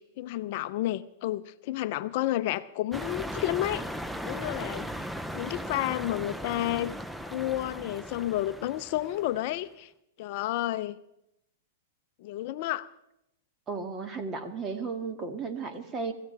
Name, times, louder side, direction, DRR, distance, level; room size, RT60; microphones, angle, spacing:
voice 1, 0.0-3.8 4.2-4.9 5.3-6.9 7.3-9.9 10.2-11.0 12.2-12.9, left 14 dB, 50° left, 13 dB, 0.5 m, -31 dB
sound 1, 2.9-9.5, equal, ahead, 0.6 m, -38 dB
voice 2, 13.7-16.1, right 4 dB, 20° right, 5 dB, 1.9 m, -34 dB
25.5 x 14.5 x 3.4 m, 0.84 s
hypercardioid pair, 130°, 0 cm